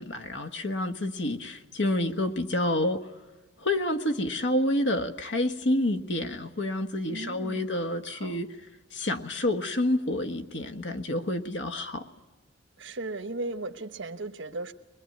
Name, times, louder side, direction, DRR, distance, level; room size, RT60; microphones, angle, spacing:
voice 1, 0.0-3.1 3.6-8.5 8.9-12.0, left 1 dB, 65° left, 6 dB, 1.5 m, -28 dB
voice 2, 7.1-7.7 8.1-8.4 12.8-14.7, right 2 dB, 80° right, 7 dB, 1.1 m, -36 dB
23.5 x 21.5 x 9.4 m, 1.2 s
head